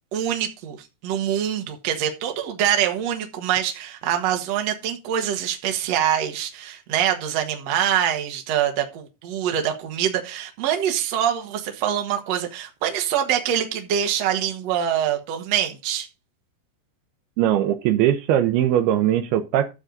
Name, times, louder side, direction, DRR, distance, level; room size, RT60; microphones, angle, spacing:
voice 1, 0.1-16.1, right 10 dB, 55° right, 2.0 m, -24 dB
voice 2, 17.4-19.7, right 11 dB, 80° right, 2.7 m, -20 dB
12.5 x 6.5 x 3.9 m
omnidirectional pair, 4.8 m